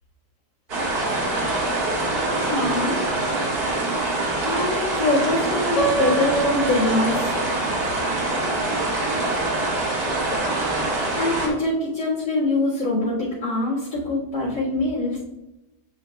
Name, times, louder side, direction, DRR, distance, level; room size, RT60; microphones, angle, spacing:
sound 1, 0.7-11.5, right 2 dB, 65° right, 2.0 m, -24 dB
voice 1, 2.4-3.0 4.4-7.4 10.9-15.2, left 2 dB, 80° left, -10 dB, 2.8 m, -24 dB
Piano, 5.8-7.7, right 4 dB, 35° left, 1.9 m, -26 dB
10.0 x 4.7 x 2.3 m, 0.97 s
omnidirectional pair, 1.8 m